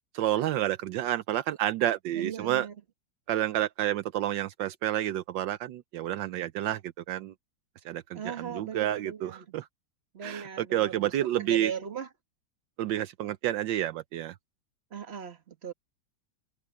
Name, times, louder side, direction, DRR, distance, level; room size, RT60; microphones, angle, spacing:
voice 1, 0.1-2.7 3.3-6.8 7.1-7.3 7.8-9.7 10.2-11.7 12.8-14.4, right 13 dB, 80° right, 1.4 m, -29 dB
voice 2, 2.1-2.7 8.1-9.5 10.1-11.1 11.4-12.1 14.9-15.7, right 7 dB, 35° right, 1.8 m, -38 dB
omnidirectional pair, 2.0 m